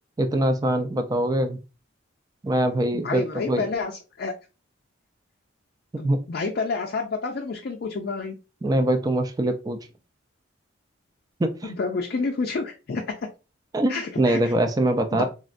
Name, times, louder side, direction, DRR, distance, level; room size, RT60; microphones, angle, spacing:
voice 1, 0.2-1.6 2.4-3.7 5.9-6.2 8.6-9.8 11.4-11.7 13.7-15.2, right 1 dB, 20° right, 6 dB, 0.3 m, -23 dB
voice 2, 2.9-3.9 4.2-4.3 6.0-8.3 11.6-13.0 13.9-14.5 15.1-15.2, left 4 dB, 55° left, 1 dB, 0.4 m, -29 dB
3.7 x 2.1 x 2.5 m, 0.30 s
head